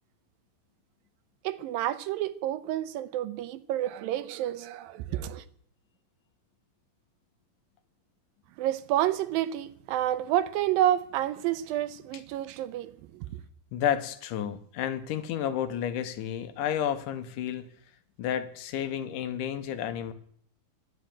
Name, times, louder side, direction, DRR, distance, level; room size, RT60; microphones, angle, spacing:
voice 1, 1.4-5.4 8.6-13.3, right 12 dB, 80° right, 2.4 m, -29 dB
voice 2, 13.7-17.7 18.2-20.1, left 9 dB, 70° left, 2.4 m, -31 dB
11.5 x 11.0 x 8.7 m
omnidirectional pair, 4.2 m